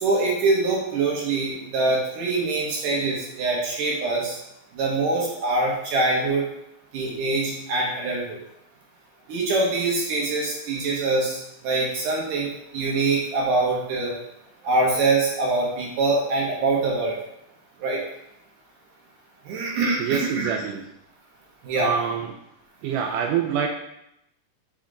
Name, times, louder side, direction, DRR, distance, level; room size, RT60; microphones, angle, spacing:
voice 1, 0.0-4.4 4.8-6.5 6.9-8.4 9.3-14.1 14.6-17.1 17.8-18.0 19.5-20.5 21.6-21.9, right 3 dB, 70° right, -3 dB, 2.5 m, -24 dB
voice 2, 20.0-20.9 21.7-22.3 22.8-23.7, right 7 dB, 85° right, 2 dB, 1.8 m, -26 dB
5.7 x 4.8 x 3.8 m, 0.80 s
omnidirectional pair, 4.3 m